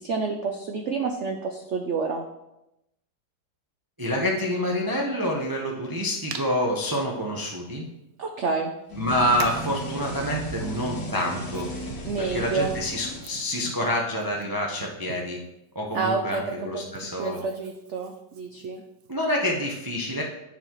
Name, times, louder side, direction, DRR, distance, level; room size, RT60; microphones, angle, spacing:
voice 1, 0.0-2.2 8.2-8.7 12.0-12.7 15.9-18.8, right 4 dB, 80° right, 3 dB, 0.6 m, -29 dB
voice 2, 4.0-7.9 9.0-11.7 12.0-15.4 15.7-17.4 19.1-20.2, equal, 25° right, -1 dB, 0.5 m, -27 dB
Hands, 6.3-6.5 6.9-7.0 8.3-8.4 9.4-9.7 10.6-15.5 15.9-19.2, right 7 dB, 65° right, 1.0 m, -43 dB
sound 1, 8.9-13.8, equal, 65° left, 2.0 m, -35 dB
9.5 x 6.9 x 3.0 m, 0.89 s
omnidirectional pair, 2.0 m